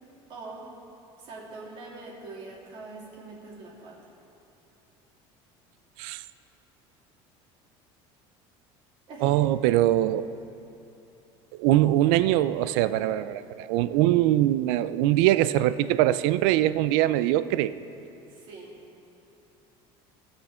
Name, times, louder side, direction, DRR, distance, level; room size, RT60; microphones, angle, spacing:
voice 1, 0.3-0.7 1.2-4.1 9.1-9.4 18.3-18.8, right 3 dB, 45° right, -4 dB, 2.8 m, -43 dB
voice 2, 9.2-10.3 11.6-17.8, right 14 dB, 75° right, 14 dB, 0.4 m, -22 dB
19.0 x 7.0 x 4.3 m, 2.9 s
cardioid pair, 155°, 12 cm